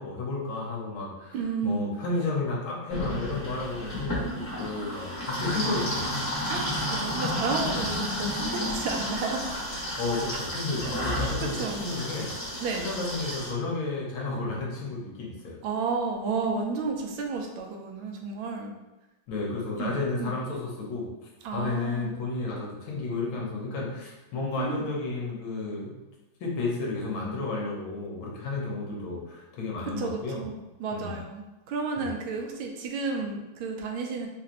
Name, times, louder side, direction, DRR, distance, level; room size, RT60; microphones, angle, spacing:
voice 1, 0.0-1.4 1.6-6.2 10.0-12.3 12.8-15.6 19.3-21.1 21.5-26.0 26.4-30.4 30.9-31.2 32.0-32.1, left 3 dB, 80° left, -3 dB, 1.6 m, -32 dB
voice 2, 1.3-1.9 6.5-9.5 11.0-11.2 11.6-11.8 12.6-12.8 15.6-18.7 19.8-20.3 21.4-22.1 24.6-24.8 29.9-34.3, right 4 dB, 80° right, 2 dB, 1.4 m, -32 dB
sound 1, 2.9-13.5, left 1 dB, 30° left, 1.5 m, -31 dB
3.9 x 2.5 x 2.9 m, 1.0 s
omnidirectional pair, 2.2 m